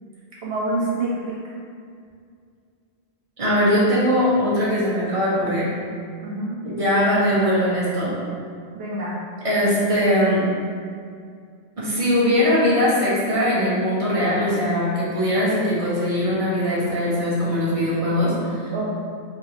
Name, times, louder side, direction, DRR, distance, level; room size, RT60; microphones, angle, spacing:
voice 1, 0.4-1.4 6.2-6.6 8.7-9.2 18.7-18.9, right 2 dB, 70° right, -5 dB, 1.2 m, -26 dB
voice 2, 3.4-5.7 6.6-8.1 9.4-10.4 11.8-18.7, equal, 35° right, -8 dB, 1.1 m, -21 dB
4.9 x 3.0 x 2.9 m, 2.2 s
omnidirectional pair, 1.1 m